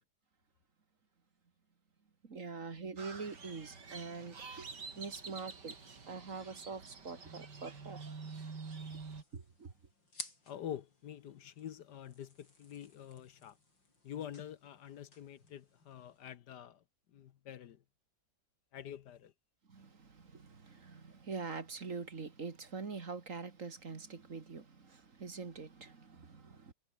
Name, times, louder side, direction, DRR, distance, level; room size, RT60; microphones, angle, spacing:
voice 1, 2.2-4.7 5.0-5.8 6.1-8.1 9.3-9.7 19.7-26.7, right 4 dB, 45° right, 2.3 m, -44 dB
Crow, 3.0-9.2, right 4 dB, 65° right, 3.6 m, -48 dB
sound 1, 8.7-16.3, left 2 dB, 85° left, 7.5 m, -55 dB
voice 2, 10.5-13.6 14.0-16.8 17.1-17.8 18.7-19.3, left 10 dB, 65° left, 1.5 m, -47 dB
omnidirectional pair, 2.0 m